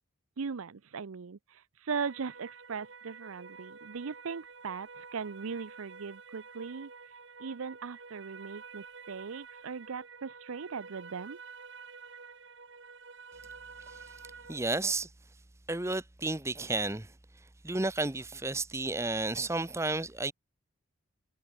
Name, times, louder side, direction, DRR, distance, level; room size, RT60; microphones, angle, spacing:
voice 1, 0.4-6.9 7.4-11.4, right 5 dB, 85° right, 0.6 m, -39 dB
sound 1, 1.9-14.6, right 5 dB, 60° right, 1.9 m, -49 dB
voice 2, 14.5-15.1 15.7-17.1 17.6-20.3, right 2 dB, 15° right, 0.8 m, -32 dB
head